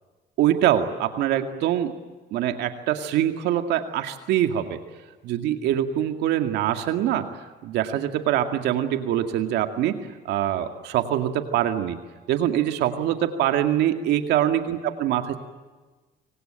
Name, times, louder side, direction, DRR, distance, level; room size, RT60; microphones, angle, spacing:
voice 1, 0.4-1.9 2.3-4.8 5.2-7.3 7.6-10.0 10.2-12.0 12.3-15.4, right 11 dB, 80° right, 7 dB, 2.2 m, -24 dB
26.0 x 25.0 x 8.9 m, 1.3 s
cardioid pair, 110°, 17 cm